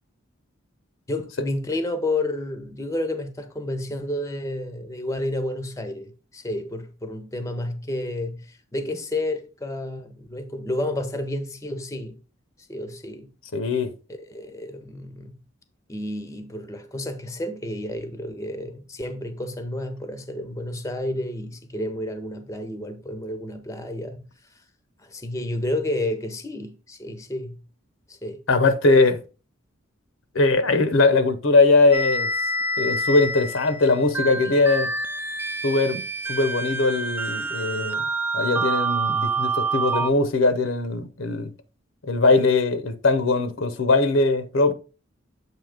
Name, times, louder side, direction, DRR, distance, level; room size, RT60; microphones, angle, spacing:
voice 1, 1.1-12.2 12.7-13.3 14.1-15.3 15.9-24.2 25.0-27.6 28.1-28.4 34.4-34.9, left 1 dB, 15° left, 0.7 m, -31 dB
voice 2, 13.5-13.9 28.5-29.2 30.3-32.3 32.8-34.9 35.6-36.0 36.3-38.0 38.3-41.5 42.1-44.7, left 3 dB, 75° left, 0.8 m, -20 dB
sound 1, 31.9-40.1, right 2 dB, 10° right, 0.3 m, -27 dB
7.6 x 2.8 x 5.0 m
head